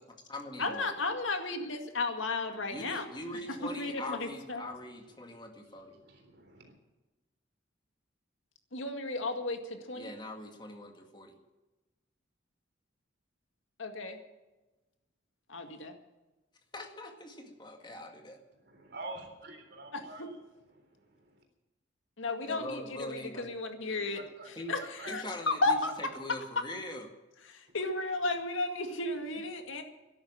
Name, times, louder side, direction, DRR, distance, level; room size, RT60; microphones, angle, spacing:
voice 1, 0.0-1.0 2.7-6.0 9.9-11.3 16.7-18.4 22.5-23.5 24.6-24.8 25.1-27.1, left 1 dB, 25° left, 2.0 m, -42 dB
voice 2, 0.6-3.1 3.8-4.6 8.7-10.1 13.8-14.2 15.5-16.0 19.9-20.0 22.2-24.2 24.7-25.9 27.5-29.8, left 3 dB, 85° left, 2.1 m, -33 dB
voice 3, 5.4-6.7 18.5-20.4 20.7-21.4 24.1-24.5 24.8-25.6, right 2 dB, 55° right, 3.7 m, -48 dB
13.5 x 11.5 x 8.8 m
head